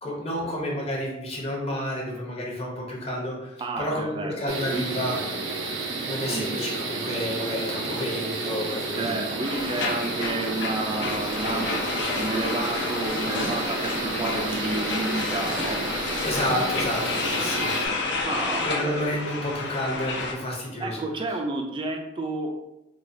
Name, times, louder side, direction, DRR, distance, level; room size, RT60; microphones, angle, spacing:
voice 1, 0.0-5.2 6.0-9.2 16.2-17.7 18.6-21.0, equal, 30° left, -2 dB, 0.8 m, -30 dB
voice 2, 3.6-4.9 6.2-6.5 9.0-15.8 16.5-16.7 18.2-19.0 20.8-22.5, right 2 dB, 25° right, 2 dB, 0.3 m, -31 dB
sound 1, 4.5-17.9, right 3 dB, 90° right, 0.6 m, -31 dB
sound 2, 9.4-20.3, left 3 dB, 65° left, 0.5 m, -30 dB
4.7 x 2.3 x 2.6 m, 0.96 s
head